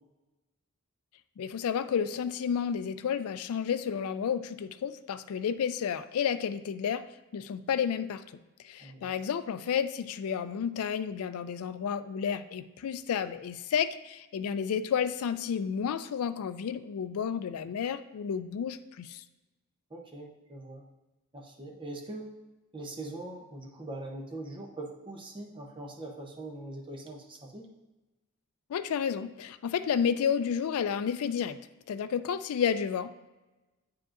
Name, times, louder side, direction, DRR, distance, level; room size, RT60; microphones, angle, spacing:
voice 1, 1.4-7.0 7.3-8.2 8.6-19.2 28.7-31.6 31.9-33.3, left 7 dB, 70° left, 11 dB, 0.3 m, -31 dB
voice 2, 8.8-9.1 19.9-20.8 21.3-22.3 22.7-27.7, right 2 dB, 20° right, 0 dB, 0.7 m, -42 dB
8.9 x 4.8 x 2.5 m, 1.1 s
head